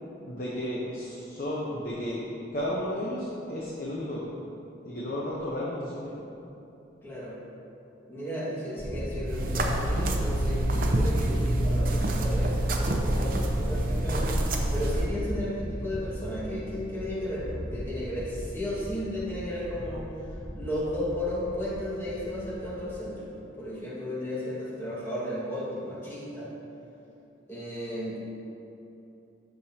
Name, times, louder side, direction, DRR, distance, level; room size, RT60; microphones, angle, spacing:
voice 1, 0.2-2.2 2.5-4.3 4.8-6.1, left 1 dB, 50° left, -6 dB, 1.0 m, -33 dB
voice 2, 7.0-7.4 8.1-14.3 14.7-20.1 20.5-23.3 23.6-26.5 27.5-28.3, left 1 dB, 10° left, -8 dB, 1.8 m, -34 dB
Thunder, 8.8-23.0, equal, 25° right, 1.0 m, -37 dB
sound 1, 9.2-15.1, right 1 dB, 50° right, 0.7 m, -27 dB
12.0 x 6.3 x 2.9 m, 2.9 s
head